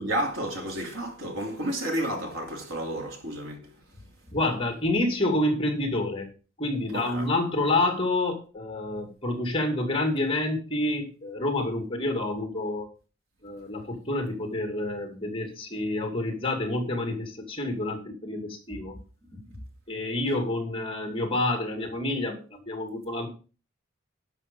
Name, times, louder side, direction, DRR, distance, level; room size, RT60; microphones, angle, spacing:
voice 1, 0.0-3.6 6.9-7.3, right 1 dB, 80° right, 2.8 m, -31 dB
voice 2, 4.3-6.3 6.6-12.9 13.4-19.0 19.3-19.6 19.9-23.3, left 2 dB, 25° left, 2.4 m, -28 dB
11.0 x 6.5 x 5.3 m
head